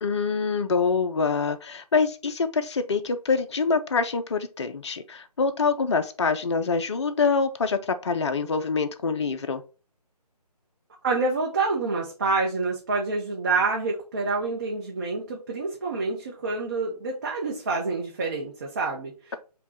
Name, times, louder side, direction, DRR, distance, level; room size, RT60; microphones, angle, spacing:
voice 1, 0.0-9.6, left 4 dB, 45° left, 9 dB, 0.5 m, -25 dB
voice 2, 11.0-19.3, right 3 dB, 30° right, -2 dB, 0.7 m, -27 dB
5.1 x 2.2 x 4.3 m, 0.34 s
figure-of-eight pair, 155°, 21 cm